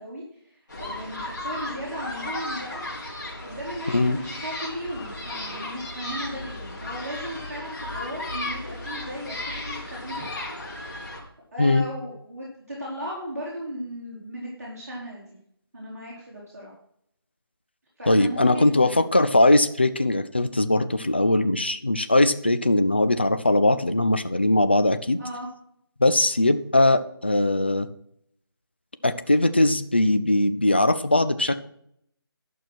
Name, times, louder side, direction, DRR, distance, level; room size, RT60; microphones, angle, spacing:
voice 1, 0.0-2.9 3.4-10.3 11.5-15.4 15.7-16.7 18.0-19.0 25.2-25.5, equal, 40° right, -6 dB, 3.6 m, -36 dB
sound 1, 0.7-11.2, left 1 dB, 50° left, 4.0 m, -35 dB
voice 2, 3.9-4.2 11.6-11.9 18.1-25.2 26.0-27.9 29.0-31.6, left 2 dB, 25° left, 10 dB, 0.4 m, -20 dB
11.5 x 6.2 x 6.1 m, 0.69 s
figure-of-eight pair, 175°, 13 cm